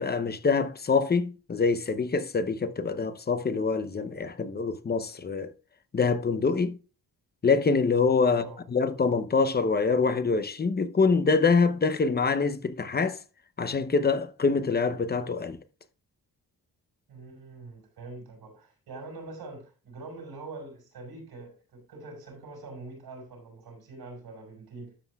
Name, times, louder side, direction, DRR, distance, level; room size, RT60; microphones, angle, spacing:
voice 1, 0.0-5.5 5.9-6.8 7.4-13.2 13.6-15.6, left 4 dB, 25° left, 0.7 m, -25 dB
voice 2, 8.3-8.6 17.1-24.9, right 3 dB, 90° right, 5.4 m, -44 dB
13.0 x 7.7 x 2.3 m
wide cardioid pair, 120°, 37 cm